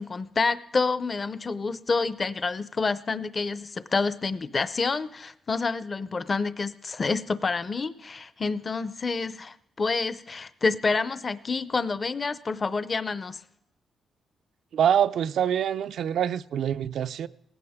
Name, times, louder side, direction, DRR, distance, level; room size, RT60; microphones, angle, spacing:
voice 1, 0.0-13.4, left 4 dB, 30° left, 0.6 m, -28 dB
voice 2, 14.7-17.3, right 9 dB, 70° right, 0.5 m, -25 dB
18.5 x 16.5 x 3.6 m
cardioid pair, 130°, 0 cm